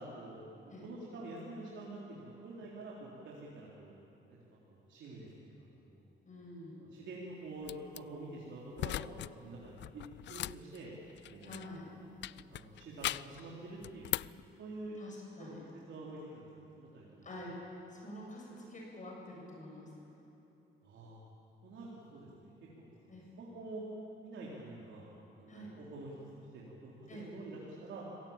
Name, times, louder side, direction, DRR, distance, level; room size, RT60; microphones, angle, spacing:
voice 1, 0.0-3.9 4.3-4.4 4.7-6.1 6.8-10.9 11.3-11.6 12.3-14.1 14.6-15.0 15.4-15.5 15.9-17.3 20.8-21.2 21.6-23.8 24.2-25.0 25.4-26.1 26.5-26.9 27.2-28.0, right 2 dB, 70° right, -5 dB, 3.8 m, -47 dB
voice 2, 6.2-6.8 11.4-11.9 14.9-15.6 17.2-17.6 17.9-19.9 23.1-23.2 25.5-25.7 27.1-27.3, left 1 dB, 40° left, -2 dB, 7.6 m, -47 dB
sound 1, 7.6-8.0 8.8-9.3 9.6-11.8 12.2-13.4 13.8-14.4, left 14 dB, 65° left, 0.4 m, -39 dB
25.5 x 17.5 x 8.9 m, 2.9 s
cardioid pair, 90°, 20 cm